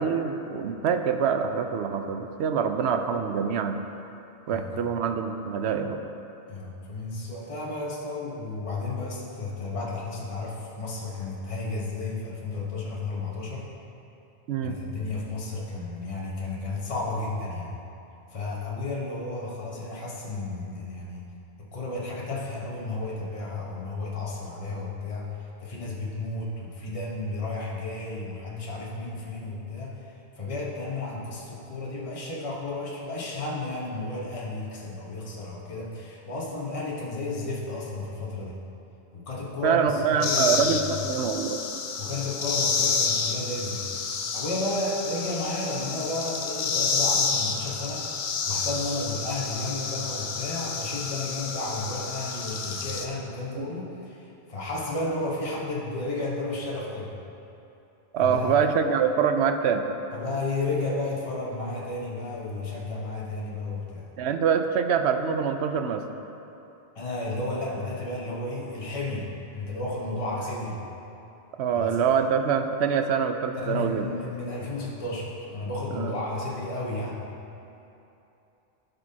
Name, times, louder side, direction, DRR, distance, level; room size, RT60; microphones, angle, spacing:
voice 1, 0.0-3.8 4.5-6.0 14.5-14.7 39.6-41.6 53.6-53.7 58.1-59.9 64.2-66.0 71.6-74.1 75.9-76.1, right 6 dB, 80° right, 7 dB, 0.8 m, -25 dB
voice 2, 6.5-13.7 14.6-17.8 18.3-21.3 21.6-38.6 39.1-41.1 42.0-57.1 58.2-58.7 60.1-64.1 66.9-70.8 71.8-72.0 73.5-77.2, left 2 dB, 30° left, -4 dB, 1.1 m, -33 dB
sound 1, 40.2-53.1, left 5 dB, 55° left, 0.7 m, -29 dB
16.0 x 5.4 x 2.8 m, 2.9 s
omnidirectional pair, 1.1 m